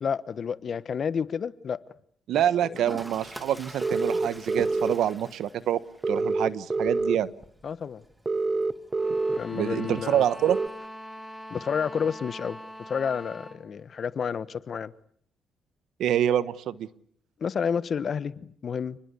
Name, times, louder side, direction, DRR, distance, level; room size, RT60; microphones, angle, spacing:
voice 1, 0.0-1.8 2.6-2.8 7.6-8.0 9.3-10.3 11.5-14.9 17.4-19.0, left 6 dB, 50° left, 1.2 m, -30 dB
voice 2, 2.3-5.8 6.1-7.3 9.5-10.6 16.0-16.9, right 10 dB, 75° right, 1.3 m, -26 dB
Toilet flush, 2.7-10.7, right 1 dB, 10° right, 2.8 m, -47 dB
sound 1, 3.8-4.9 6.0-7.2 8.3-9.4 10.5-10.7, right 3 dB, 25° right, 1.1 m, -26 dB
sound 2, 8.9-13.6, equal, 10° left, 4.4 m, -43 dB
29.5 x 20.5 x 8.4 m
cardioid pair, 90°, 0 cm